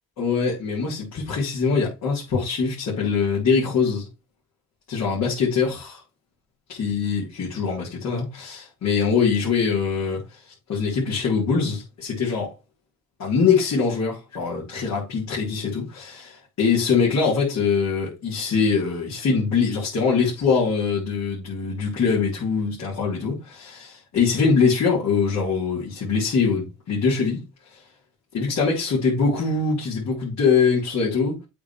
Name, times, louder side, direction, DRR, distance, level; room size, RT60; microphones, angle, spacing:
voice 1, 0.2-4.1 4.9-6.0 6.7-10.4 10.7-12.5 13.2-27.4 28.3-31.4, left 5 dB, 65° left, 3.8 m, -23 dB
8.4 x 3.8 x 4.6 m
cardioid pair, 90°, 30 cm